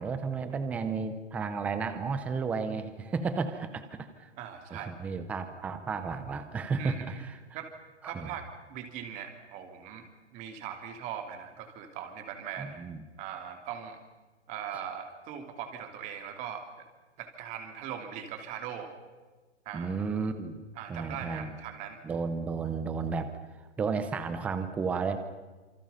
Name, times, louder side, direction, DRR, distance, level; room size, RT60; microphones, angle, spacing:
voice 1, 0.0-4.3 4.7-7.4 8.0-8.3 12.6-13.0 19.7-20.6 20.9-21.5 22.0-23.3 23.8-25.2, right 5 dB, 5° right, 10 dB, 0.6 m, -33 dB
voice 2, 4.4-4.9 6.8-7.2 7.5-7.7 8.0-10.1 10.3-12.8 13.2-14.0 14.5-16.9 17.2-18.9 19.6-19.9 20.8-22.0, right 9 dB, 20° right, 5 dB, 3.0 m, -40 dB
27.5 x 25.0 x 5.7 m, 1.3 s
hypercardioid pair, 160°, 36 cm